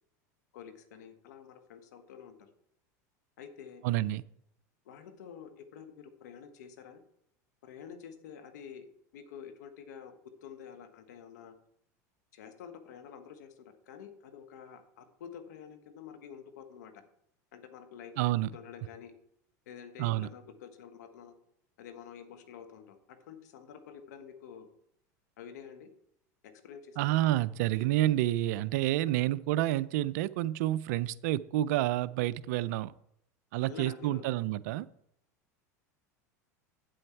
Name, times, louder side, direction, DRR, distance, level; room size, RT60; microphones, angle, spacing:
voice 1, 0.5-2.5 3.4-3.8 4.8-7.0 7.6-8.9 9.1-11.5 12.3-17.0 17.5-19.1 19.7-21.3 21.8-24.7 25.4-25.9 26.4-27.1 33.6-34.3, left 7 dB, 75° left, 8 dB, 1.2 m, -49 dB
voice 2, 3.8-4.2 18.2-18.5 20.0-20.3 27.0-32.9 33.5-34.9, right 15 dB, 70° right, 18 dB, 0.4 m, -29 dB
8.5 x 7.8 x 4.5 m, 0.74 s
hypercardioid pair, 95°, 9 cm